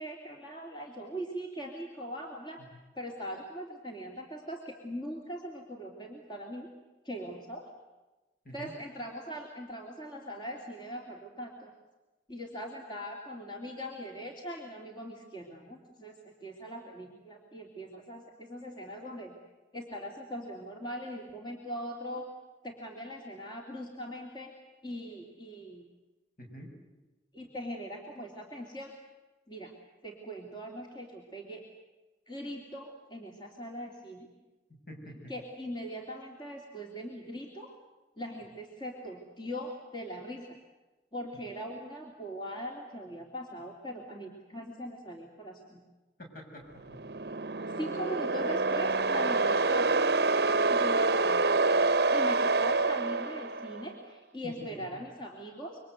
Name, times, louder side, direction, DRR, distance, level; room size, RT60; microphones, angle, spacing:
voice 1, 0.0-2.6 2.9-6.7 7.0-7.7 8.5-11.7 12.3-19.3 19.7-22.3 22.6-24.6 24.8-25.9 27.3-28.9 29.5-29.7 30.0-31.7 32.3-34.3 35.3-37.8 38.2-40.6 41.1-45.8 47.8-50.0 50.7-55.8, equal, 25° left, 1 dB, 3.0 m, -41 dB
voice 2, 26.4-26.7 34.7-35.3 46.2-47.0 47.6-47.8 54.4-54.7, equal, 50° left, 2 dB, 7.2 m, -47 dB
sound 1, 46.8-53.9, right 3 dB, 60° right, 0.9 m, -27 dB
27.5 x 24.0 x 8.1 m, 1.1 s
head